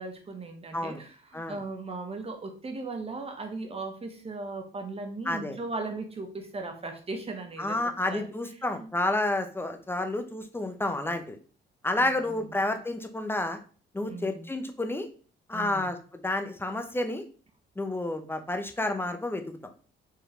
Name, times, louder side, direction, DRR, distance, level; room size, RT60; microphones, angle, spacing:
voice 1, 0.0-8.3 8.8-8.9 12.0-12.4 14.1-14.5 15.5-15.9, right 3 dB, 30° right, 5 dB, 1.0 m, -38 dB
voice 2, 5.3-5.6 7.6-11.4 11.8-13.6 13.9-15.1 15.5-16.0 16.2-17.2 17.8-19.6, left 2 dB, 10° left, 6 dB, 0.7 m, -30 dB
4.7 x 3.3 x 3.2 m, 0.39 s
cardioid pair, 90°, 20 cm